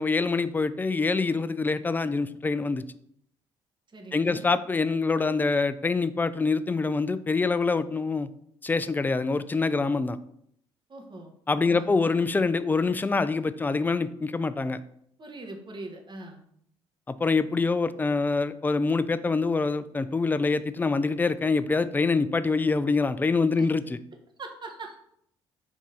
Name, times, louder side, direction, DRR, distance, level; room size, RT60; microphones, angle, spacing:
voice 1, 0.0-2.8 4.1-8.3 8.6-10.2 11.5-14.8 17.1-24.0, left 4 dB, 15° left, 14 dB, 0.3 m, -25 dB
voice 2, 3.9-4.5 10.9-11.3 11.6-11.9 15.2-16.4 23.6-23.7 24.4-25.0, right 2 dB, 35° right, 3 dB, 1.1 m, -41 dB
3.6 x 3.5 x 4.1 m, 0.70 s
hypercardioid pair, 50°, 13 cm